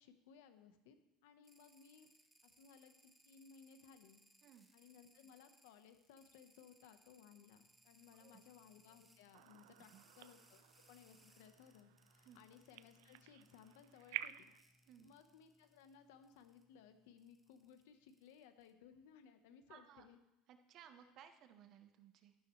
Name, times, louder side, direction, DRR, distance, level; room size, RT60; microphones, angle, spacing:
voice 1, 0.0-2.1 2.4-4.2 4.7-14.5 15.0-20.2, left 7 dB, 85° left, 8 dB, 1.1 m, -62 dB
sound 1, 1.4-15.9 16.2-16.6 17.2-18.7, right 1 dB, 5° right, 0.6 m, -71 dB
sound 2, 6.8-18.5, left 1 dB, 20° left, 3.7 m, -77 dB
sound 3, 9.3-14.6, right 15 dB, 80° right, 0.3 m, -51 dB
voice 2, 19.7-20.1 20.5-22.4, right 9 dB, 35° right, 8 dB, 0.9 m, -61 dB
12.0 x 11.5 x 3.2 m, 0.93 s
cardioid pair, 180°, 0 cm